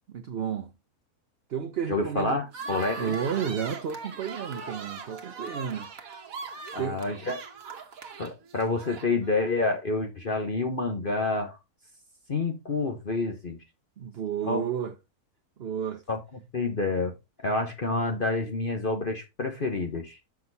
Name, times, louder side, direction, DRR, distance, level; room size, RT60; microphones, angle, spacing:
voice 1, 0.1-0.7 1.5-2.4 3.0-5.9 6.8-7.0 14.0-14.9 15.6-16.0, right 8 dB, 50° right, 0.9 m, -32 dB
voice 2, 1.9-3.1 6.7-7.4 8.2-11.6 12.3-13.6 14.4-14.6 16.1-16.2 16.5-17.1 17.4-20.2, left 3 dB, 40° left, 1.2 m, -28 dB
sound 1, 2.5-9.4, right 4 dB, 70° right, 1.6 m, -40 dB
7.1 x 6.4 x 4.0 m
omnidirectional pair, 1.6 m